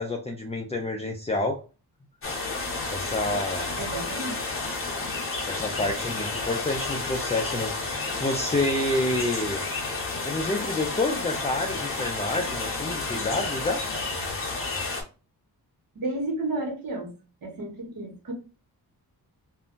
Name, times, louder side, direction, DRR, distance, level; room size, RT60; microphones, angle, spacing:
voice 1, 0.0-1.6 2.9-3.7 5.5-9.6 10.2-13.9, left 2 dB, 20° left, 2 dB, 0.3 m, -28 dB
sound 1, 2.2-15.0, left 3 dB, 35° left, 0.8 m, -31 dB
voice 2, 3.8-4.4 15.9-17.1 17.4-18.3, right 2 dB, 60° right, 1 dB, 1.2 m, -32 dB
2.5 x 2.1 x 3.7 m, 0.33 s
wide cardioid pair, 165°, 38 cm